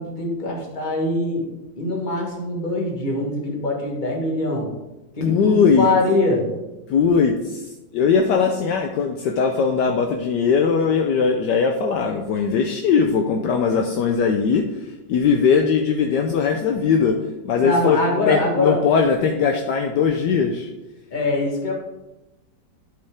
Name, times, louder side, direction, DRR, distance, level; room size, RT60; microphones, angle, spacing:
voice 1, 0.0-1.5 1.8-4.7 5.2-6.5 17.6-18.8 21.1-21.7, left 2 dB, 25° left, -1 dB, 1.6 m, -23 dB
voice 2, 5.2-5.9 6.9-17.2 17.4-18.0 18.3-20.7, left 6 dB, 70° left, 3 dB, 1.2 m, -20 dB
12.0 x 4.8 x 3.5 m, 1.0 s
omnidirectional pair, 2.1 m